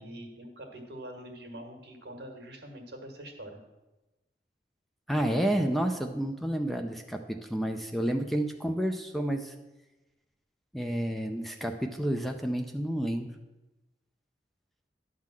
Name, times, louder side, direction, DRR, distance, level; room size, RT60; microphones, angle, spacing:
voice 1, 0.0-3.6, right 1 dB, 75° right, 3 dB, 1.7 m, -44 dB
voice 2, 5.1-9.5 10.7-13.3, right 1 dB, ahead, 4 dB, 0.5 m, -30 dB
11.0 x 3.8 x 7.4 m, 1.1 s
head